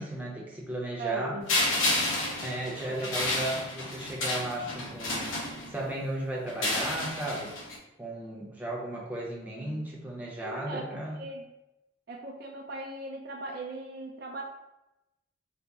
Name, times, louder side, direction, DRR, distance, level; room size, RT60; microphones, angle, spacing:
voice 1, 0.0-1.5 2.4-5.4 5.7-7.5 8.0-11.3, right 1 dB, 10° right, -4 dB, 0.6 m, -35 dB
voice 2, 1.0-2.0 3.0-3.2 9.6-9.9 10.4-11.4 12.1-14.4, right 2 dB, 50° right, 1 dB, 0.4 m, -39 dB
sound 1, 1.5-5.9 6.5-7.8, left 2 dB, 80° left, 0.8 m, -31 dB
3.4 x 2.0 x 4.0 m, 0.92 s
head